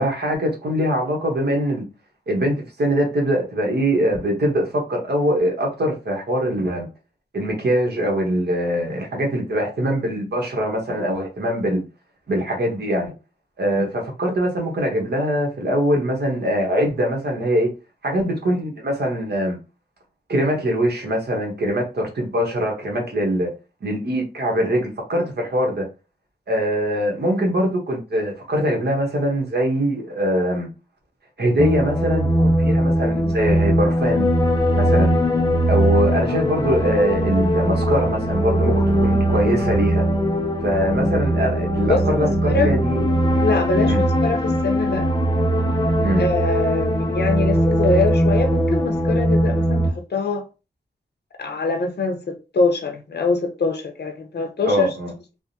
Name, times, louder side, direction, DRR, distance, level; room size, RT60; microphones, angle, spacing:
voice 1, 0.0-1.8 2.3-6.9 7.3-11.8 12.3-13.1 13.6-17.7 18.0-19.6 20.3-23.5 23.8-25.9 26.5-30.7 31.4-34.3 34.8-35.2 35.7-40.0 40.6-43.4 43.8-44.0 46.0-46.2 54.7-55.1, equal, 70° right, 1.1 m, -22 dB
sound 1, 31.6-49.9, right 1 dB, 20° left, 0.6 m, -20 dB
voice 2, 41.9-42.7 43.4-45.1 46.2-50.4 51.4-54.9, left 3 dB, 70° left, 0.7 m, -23 dB
3.4 x 2.1 x 2.7 m
wide cardioid pair, 90°, 18 cm